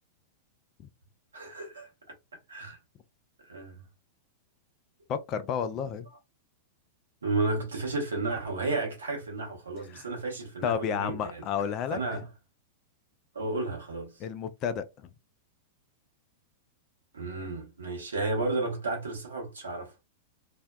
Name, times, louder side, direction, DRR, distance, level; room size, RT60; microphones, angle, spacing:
voice 1, 1.3-1.9 2.5-2.8 3.5-3.8 7.2-11.4 11.9-12.3 13.3-14.1 17.1-19.9, right 3 dB, 80° right, 1.0 m, -32 dB
voice 2, 5.1-6.1 9.9-10.1 10.6-12.2 14.2-14.9, left 7 dB, 40° left, 0.3 m, -31 dB
2.5 x 2.1 x 2.2 m
figure-of-eight pair, 95°, 0 cm